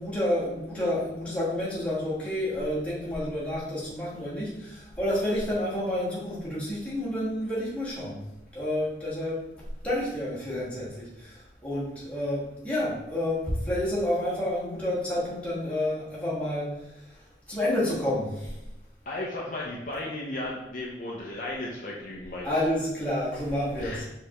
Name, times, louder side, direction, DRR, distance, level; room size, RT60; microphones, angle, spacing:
voice 1, 0.0-8.2 8.5-9.4 9.8-17.2 17.5-18.5 22.4-24.0, left 1 dB, 10° left, -8 dB, 1.4 m, -29 dB
voice 2, 19.1-22.5 22.8-22.9 23.8-24.0, left 2 dB, 45° left, -3 dB, 0.6 m, -35 dB
5.0 x 3.3 x 2.9 m, 0.91 s
head